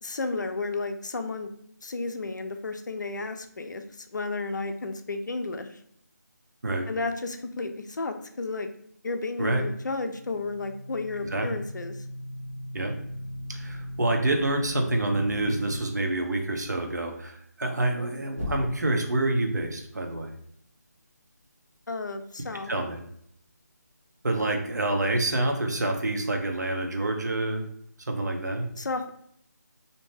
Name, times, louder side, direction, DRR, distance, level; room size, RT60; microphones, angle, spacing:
voice 1, 0.0-1.5 1.8-5.7 6.9-8.7 9.0-12.0 21.9-22.7 28.8-29.1, left 3 dB, 80° left, 7 dB, 0.4 m, -32 dB
sound 1, 10.0-15.8 18.3-19.1, left 1 dB, 50° right, 0.9 m, -37 dB
voice 2, 13.5-20.3 22.7-23.0 24.2-27.7 28.1-28.7, right 2 dB, 70° right, 3 dB, 0.6 m, -27 dB
2.6 x 2.1 x 3.1 m, 0.69 s
figure-of-eight pair, 175°, 10 cm